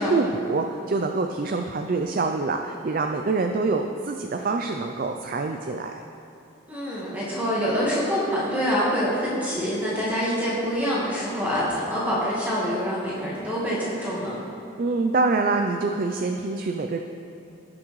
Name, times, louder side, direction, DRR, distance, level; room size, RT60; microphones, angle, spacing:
voice 1, 0.0-6.0 14.8-17.0, right 3 dB, 45° right, 4 dB, 0.4 m, -25 dB
voice 2, 6.7-14.4, equal, 10° right, -8 dB, 1.5 m, -26 dB
18.0 x 6.1 x 3.1 m, 2.7 s
head